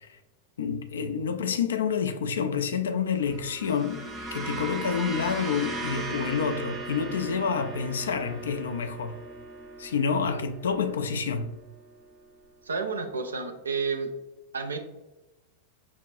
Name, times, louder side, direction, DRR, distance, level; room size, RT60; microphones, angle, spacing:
voice 1, 0.6-4.0 4.3-9.2 9.8-11.5, left 6 dB, 65° left, 0.3 m, -28 dB
sound 1, 3.2-11.7, right 2 dB, 25° right, 0.6 m, -38 dB
voice 2, 12.6-14.1 14.5-14.8, right 4 dB, 75° right, 0.4 m, -31 dB
5.8 x 2.2 x 2.6 m
figure-of-eight pair, 90°, 0 cm